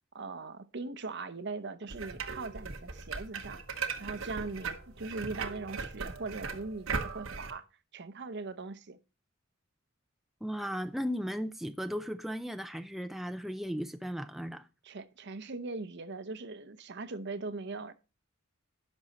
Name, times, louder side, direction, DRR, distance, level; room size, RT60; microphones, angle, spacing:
voice 1, 0.1-3.6 4.0-7.7 7.9-9.0 14.8-17.9, right 3 dB, 60° right, 0.8 m, -40 dB
sound 1, 1.9-7.5, right 5 dB, 80° right, 1.1 m, -38 dB
voice 2, 10.4-14.7, equal, ahead, 0.4 m, -36 dB
11.0 x 6.1 x 4.1 m
head